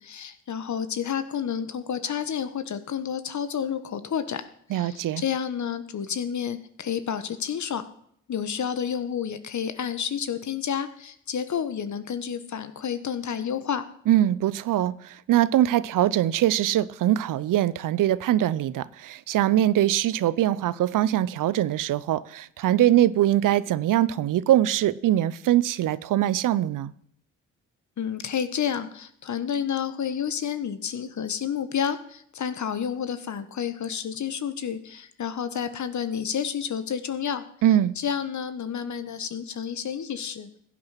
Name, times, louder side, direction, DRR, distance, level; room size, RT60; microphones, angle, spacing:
voice 1, 0.0-4.4 4.7-7.9 8.3-13.8 28.0-37.4 38.0-40.6, left 8 dB, 55° left, 1.4 m, -30 dB
voice 2, 4.7-5.2 14.1-26.9 37.6-37.9, right 12 dB, 65° right, 0.7 m, -22 dB
15.5 x 8.6 x 5.8 m
hypercardioid pair, 45°, 34 cm